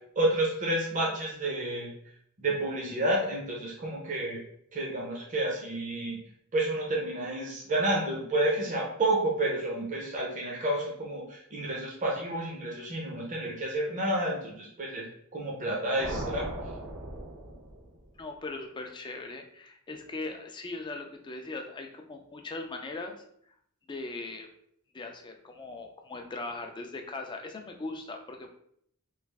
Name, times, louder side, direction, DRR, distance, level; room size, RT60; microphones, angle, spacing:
voice 1, 0.2-1.9 2.4-4.4 4.7-6.2 6.5-15.0 15.3-16.5, right 1 dB, 35° right, -3 dB, 0.6 m, -30 dB
sound 1, 16.0-18.2, right 1 dB, 65° right, 0.9 m, -38 dB
voice 2, 18.2-23.1 23.9-24.5 24.9-28.5, left 3 dB, 20° left, 4 dB, 0.3 m, -39 dB
3.1 x 2.4 x 3.4 m, 0.69 s
head